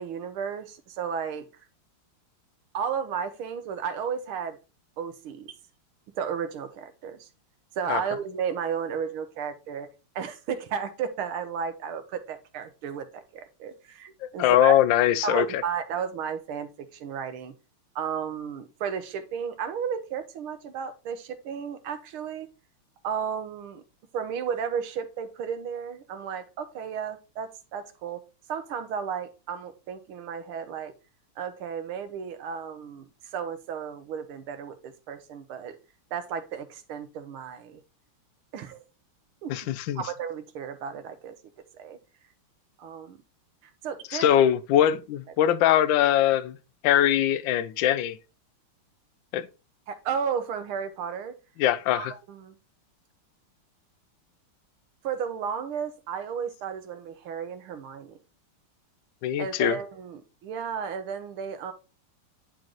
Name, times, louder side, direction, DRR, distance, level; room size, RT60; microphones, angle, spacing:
voice 1, 0.0-1.5 2.7-4.6 5.0-5.5 6.2-7.3 7.8-9.9 10.2-14.7 15.2-17.5 18.0-22.5 23.0-23.8 24.1-28.2 28.5-30.9 31.4-35.8 36.1-37.8 38.5-38.8 39.4-39.5 40.0-41.4 41.7-42.0 42.8-43.2 43.6-44.3 49.9-51.4 51.9-52.6 55.0-58.2 59.4-61.7, right 7 dB, 80° right, 1.7 m, -33 dB
voice 2, 14.2-15.6 39.5-40.0 44.1-46.6 46.8-48.2 49.3-49.5 51.6-52.1 59.2-59.8, left 11 dB, 75° left, 1.2 m, -22 dB
10.0 x 3.9 x 3.1 m
omnidirectional pair, 2.3 m